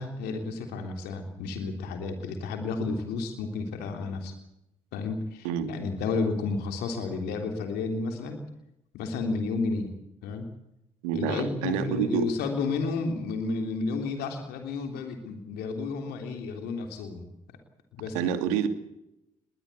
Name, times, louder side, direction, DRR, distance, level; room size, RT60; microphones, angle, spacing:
voice 1, 0.0-4.3 4.9-8.4 8.9-9.9 10.2-10.5 11.1-17.3 17.9-18.3, left 4 dB, 70° left, 5 dB, 3.4 m, -31 dB
voice 2, 11.0-12.3 18.1-18.7, right 9 dB, 80° right, 9 dB, 2.3 m, -27 dB
21.0 x 19.0 x 8.4 m, 0.84 s
hypercardioid pair, 50°, 17 cm